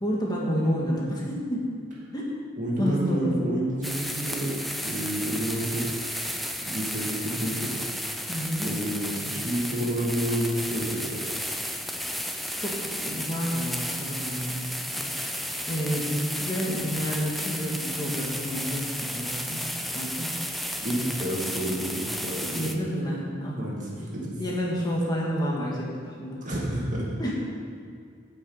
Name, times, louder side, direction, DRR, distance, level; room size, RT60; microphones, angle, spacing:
voice 1, 0.0-1.6 2.1-2.3 2.8-3.6 8.3-8.7 12.6-14.6 15.0-15.3 15.7-20.3 22.5-23.6 24.0-24.1 24.4-25.9 26.2-26.4 27.2-27.3, equal, 20° left, -4 dB, 1.7 m, -29 dB
voice 2, 2.6-4.5 4.8-6.0 6.6-7.8 8.6-11.3 20.8-22.6 23.5-24.4 26.4-27.1, right 1 dB, 40° right, -4 dB, 2.3 m, -29 dB
sound 1, 3.8-22.7, equal, ahead, 0.5 m, -33 dB
9.6 x 5.9 x 8.0 m, 2.4 s
head